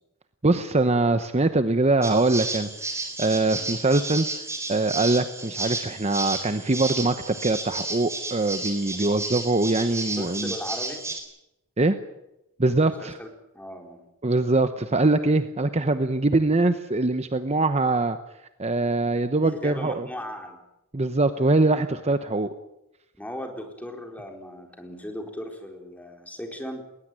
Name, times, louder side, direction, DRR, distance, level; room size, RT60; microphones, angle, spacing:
voice 1, 0.4-2.9 3.2-4.3 4.7-10.5 11.8-12.0 12.6-13.2 14.2-18.2 18.6-20.1 20.9-22.5, right 2 dB, 30° right, 10 dB, 0.9 m, -23 dB
sound 1, 2.0-11.2, right 3 dB, 15° right, 4.2 m, -32 dB
voice 2, 10.2-11.0 12.7-13.3 13.5-14.1 19.4-20.6 21.4-21.6 23.2-26.8, equal, 5° left, 3 dB, 4.2 m, -37 dB
20.0 x 19.5 x 9.1 m, 0.89 s
head